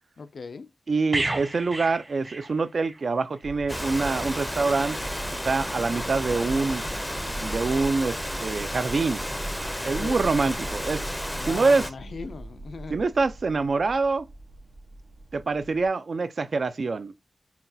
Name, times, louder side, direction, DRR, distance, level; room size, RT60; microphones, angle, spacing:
voice 1, 0.2-0.7 10.0-10.2 11.4-12.9, left 4 dB, 80° left, 0.3 m, -39 dB
voice 2, 0.9-5.0 5.4-6.8 7.4-9.2 9.8-11.1 11.4-11.8 12.9-14.3 15.3-17.1, right 4 dB, 70° right, 0.4 m, -25 dB
sound 1, 1.1-3.0 3.3-3.5, right 2 dB, 35° right, 0.8 m, -32 dB
sound 2, 3.4-15.9, right 1 dB, 90° right, 0.8 m, -40 dB
Rain, 3.7-11.9, equal, 5° left, 0.5 m, -32 dB
5.7 x 2.3 x 2.6 m
wide cardioid pair, 65°, 0 cm